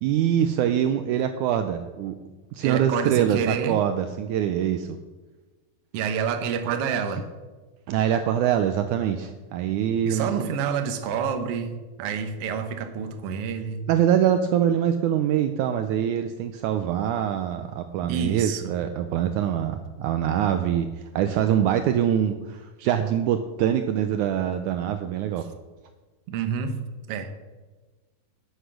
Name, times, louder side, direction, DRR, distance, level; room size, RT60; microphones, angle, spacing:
voice 1, 0.0-2.2 2.5-5.0 7.9-10.5 13.9-20.9 21.2-25.4, right 10 dB, 85° right, 8 dB, 1.7 m, -24 dB
voice 2, 2.6-3.8 5.9-7.3 10.0-13.8 17.9-18.7 26.3-26.8 27.1-27.3, right 6 dB, 70° right, 7 dB, 1.4 m, -28 dB
10.0 x 8.2 x 6.4 m, 1.2 s
omnidirectional pair, 4.1 m